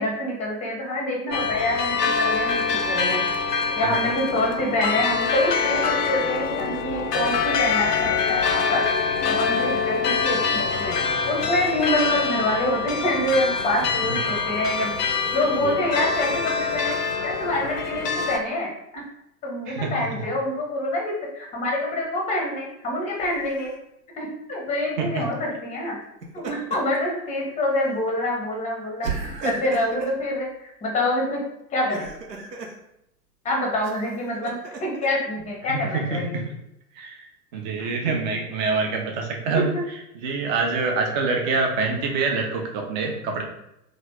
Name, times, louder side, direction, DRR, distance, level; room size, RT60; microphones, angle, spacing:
voice 1, 0.0-8.8 9.2-10.9 11.3-14.9 15.3-17.0 17.2-19.0 19.4-23.7 24.2-26.0 26.4-31.4 31.7-32.1 33.4-36.4 37.8-37.9 39.6-39.8, left 1 dB, 15° left, -1 dB, 0.6 m, -26 dB
sound 1, 1.3-18.4, left 5 dB, 75° left, 0.6 m, -25 dB
voice 2, 19.7-20.0 25.0-25.3 35.7-36.5 37.0-37.3 37.5-39.8 40.2-43.4, right 4 dB, 30° right, 2 dB, 0.5 m, -26 dB
Laughter, 23.2-23.7 26.0-27.0 27.4-27.6 29.0-30.2 31.7-32.8 33.8-35.1, right 4 dB, 85° right, 0.7 m, -34 dB
2.9 x 2.4 x 3.4 m, 0.82 s
figure-of-eight pair, 100°, 48 cm